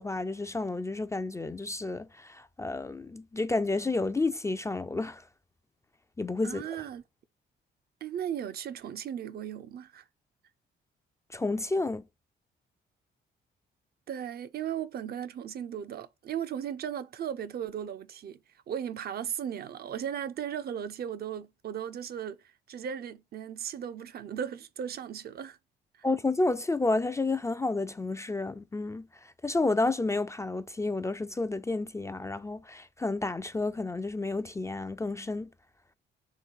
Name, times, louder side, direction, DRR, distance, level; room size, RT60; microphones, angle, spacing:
voice 1, 0.0-5.2 6.2-6.6 11.3-12.0 26.0-35.5, left 3 dB, 15° left, 0.3 m, -30 dB
voice 2, 6.4-7.0 8.0-10.0 14.1-18.4 18.7-22.4 22.7-25.6 25.9-26.1, right 9 dB, 50° right, 0.5 m, -36 dB
3.9 x 3.1 x 4.5 m
cardioid pair, 90°, 20 cm